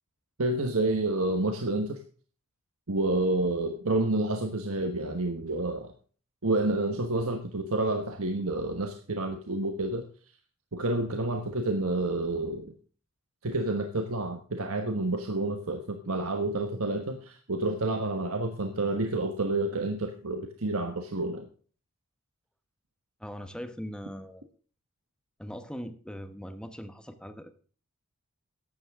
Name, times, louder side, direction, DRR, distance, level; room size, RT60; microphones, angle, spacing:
voice 1, 0.4-2.0 2.9-5.9 6.4-10.0 10.7-12.7 13.4-21.5, right 2 dB, 75° right, 5 dB, 1.3 m, -29 dB
voice 2, 23.2-24.4 25.4-27.6, equal, 5° left, 9 dB, 1.0 m, -40 dB
14.0 x 11.0 x 3.6 m, 0.42 s
head